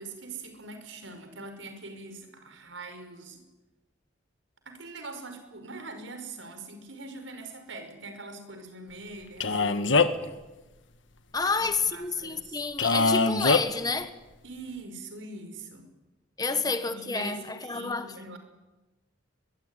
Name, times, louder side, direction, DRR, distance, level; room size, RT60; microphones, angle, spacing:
voice 1, 0.0-3.4 4.7-10.2 11.4-12.6 14.4-15.9 16.5-18.4, right 2 dB, 85° right, 5.5 m, -43 dB
Male speech man speaking, 9.4-10.3 12.8-13.6, left 3 dB, 75° left, 1.6 m, -22 dB
voice 2, 11.3-14.1 16.4-18.1, left 4 dB, 20° left, 1.5 m, -29 dB
23.0 x 22.5 x 10.0 m
head